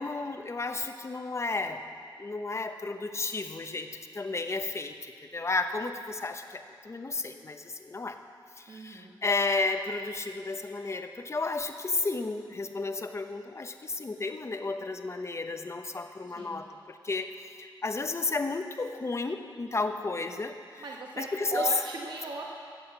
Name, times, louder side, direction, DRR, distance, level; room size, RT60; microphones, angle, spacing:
voice 1, 0.0-1.8 2.2-8.2 8.6-20.8 21.2-21.7, left 3 dB, 35° left, 7 dB, 0.8 m, -33 dB
voice 2, 8.7-9.1 16.2-16.6 20.8-22.6, right 3 dB, 60° right, -1 dB, 1.2 m, -37 dB
13.5 x 7.9 x 8.0 m, 2.4 s
wide cardioid pair, 105°, 9 cm